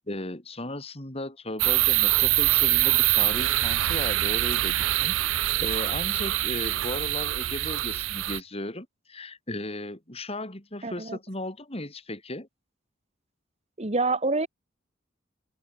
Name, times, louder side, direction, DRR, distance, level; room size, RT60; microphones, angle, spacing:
voice 1, 0.1-12.5, left 1 dB, 30° left, 4.3 m, -36 dB
sound 1, 1.6-8.4, right 17 dB, 70° right, 0.4 m, -24 dB
voice 2, 10.8-11.2 13.8-14.5, right 3 dB, 35° right, 1.7 m, -26 dB
head